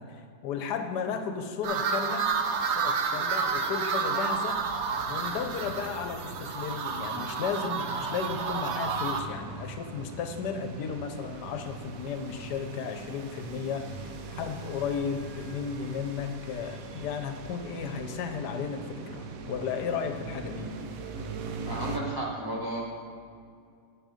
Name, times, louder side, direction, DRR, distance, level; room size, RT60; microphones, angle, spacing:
voice 1, 0.0-2.3 2.6-20.7, left 6 dB, 70° left, 6 dB, 1.3 m, -34 dB
sound 1, 1.6-9.2, right 5 dB, 80° right, 0.6 m, -30 dB
sound 2, 4.3-22.0, right 4 dB, 65° right, 0.9 m, -42 dB
voice 2, 21.6-22.8, right 1 dB, 15° right, -6 dB, 1.3 m, -33 dB
7.4 x 6.4 x 4.9 m, 2.3 s
omnidirectional pair, 1.9 m